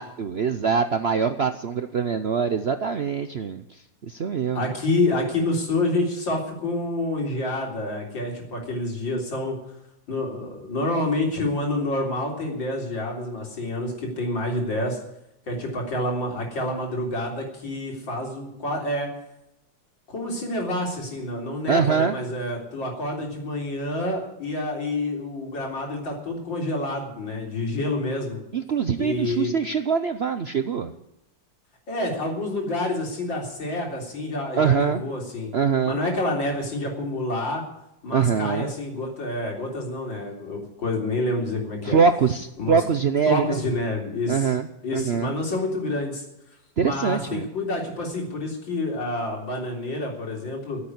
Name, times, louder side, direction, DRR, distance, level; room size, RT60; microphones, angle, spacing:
voice 1, 0.0-3.6 4.1-4.6 21.7-22.1 28.5-30.9 34.6-35.0 35.5-36.0 38.1-38.7 41.8-43.6 44.3-44.7 44.9-45.3 46.8-47.5, right 6 dB, 60° right, 9 dB, 0.6 m, -23 dB
voice 2, 4.5-9.6 10.1-15.0 15.5-19.1 20.1-28.4 29.0-29.5 31.9-35.5 35.9-37.6 38.0-42.0 42.6-42.8 43.3-44.6 44.8-46.2 46.8-50.8, left 2 dB, 90° left, 0 dB, 4.4 m, -28 dB
14.5 x 8.6 x 9.6 m, 0.84 s
omnidirectional pair, 2.0 m